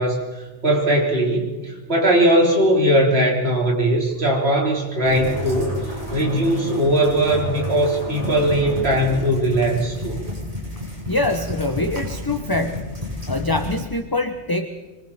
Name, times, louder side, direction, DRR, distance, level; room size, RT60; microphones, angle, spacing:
voice 1, 0.0-10.2, right 1 dB, 45° right, -1 dB, 4.3 m, -20 dB
sound 1, 5.0-13.8, left 1 dB, 25° right, 6.2 m, -31 dB
voice 2, 11.1-13.0 13.3-14.7, left 2 dB, 15° left, 7 dB, 1.0 m, -24 dB
27.0 x 24.5 x 4.3 m, 1.2 s
omnidirectional pair, 1.5 m